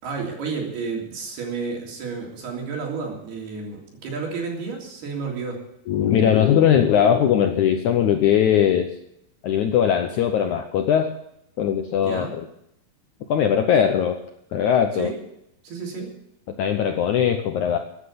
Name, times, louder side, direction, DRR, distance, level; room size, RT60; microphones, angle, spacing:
voice 1, 0.0-5.6 12.0-12.4 15.0-15.2 15.6-16.1, right 4 dB, 75° right, 0 dB, 5.3 m, -31 dB
voice 2, 5.9-8.9 9.4-11.1 11.6-12.4 13.3-14.2 14.5-15.1 16.6-17.8, left 9 dB, 75° left, 6 dB, 1.8 m, -20 dB
14.5 x 9.9 x 8.3 m, 0.77 s
omnidirectional pair, 4.5 m